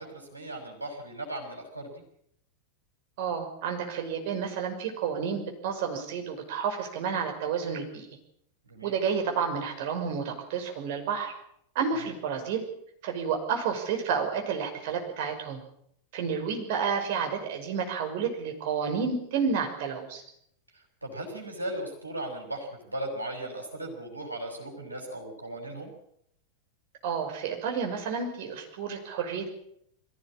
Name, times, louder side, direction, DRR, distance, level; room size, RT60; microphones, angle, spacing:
voice 1, 0.0-2.0 8.6-9.0 11.9-12.1 20.7-25.9, right 1 dB, 85° right, 2 dB, 6.2 m, -37 dB
voice 2, 3.2-8.1 8.8-11.3 11.7-12.6 13.0-15.6 16.1-20.2 27.0-29.5, right 6 dB, 50° right, 3 dB, 5.8 m, -30 dB
22.0 x 16.5 x 8.8 m, 0.72 s
figure-of-eight pair, 90°, 0 cm